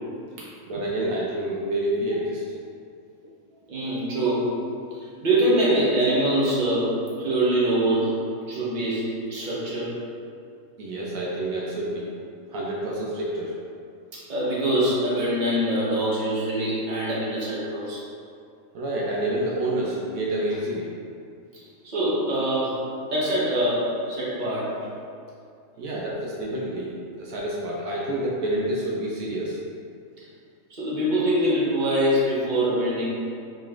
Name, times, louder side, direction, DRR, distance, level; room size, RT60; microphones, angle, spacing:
voice 1, 0.7-2.6 10.8-12.1 12.5-13.5 18.7-20.9 25.8-29.6, right 1 dB, 75° right, -4 dB, 1.0 m, -28 dB
voice 2, 3.7-4.5 4.9-8.2 8.5-10.0 14.1-18.0 21.8-24.7 30.2-30.3 30.7-33.0, right 1 dB, 35° right, -8 dB, 1.0 m, -24 dB
5.0 x 3.1 x 2.4 m, 2.4 s
omnidirectional pair, 1.5 m